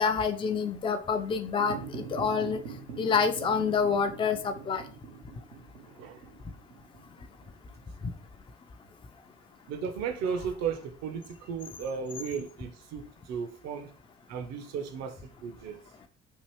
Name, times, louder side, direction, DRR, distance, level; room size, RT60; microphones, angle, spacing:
voice 1, 0.0-2.6 3.0-4.8, left 5 dB, 15° left, 0.4 m, -27 dB
sound 1, 1.6-8.2, right 5 dB, 85° right, 0.7 m, -44 dB
voice 2, 5.9-6.2 9.7-13.9 14.3-15.8, right 6 dB, 55° right, 0.6 m, -35 dB
2.9 x 2.5 x 3.2 m
hypercardioid pair, 50°, 33 cm